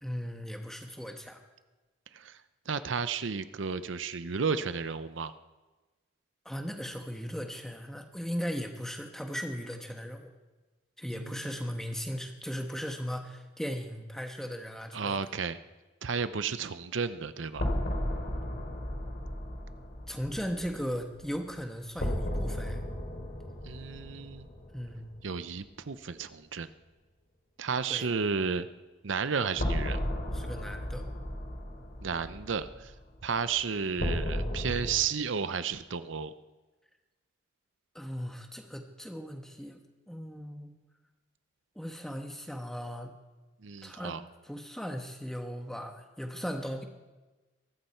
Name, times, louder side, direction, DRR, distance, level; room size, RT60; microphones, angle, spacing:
voice 1, 0.0-1.4 6.4-10.3 11.0-15.2 20.1-22.8 24.7-25.1 27.9-28.1 30.3-31.0 37.9-40.7 41.7-43.1 43.8-44.2 44.4-46.8, equal, ahead, 4 dB, 1.3 m, -37 dB
voice 2, 2.7-5.3 11.1-11.6 14.9-15.6 16.0-17.7 23.6-24.5 25.2-26.7 27.6-28.7 29.0-30.0 32.0-32.9 33.2-36.3 43.6-44.2, right 5 dB, 80° right, 13 dB, 0.7 m, -32 dB
sound 1, 17.5-25.3 25.6-25.7 29.5-35.0, equal, 55° left, 3.7 m, -35 dB
23.0 x 13.5 x 4.5 m, 1.2 s
head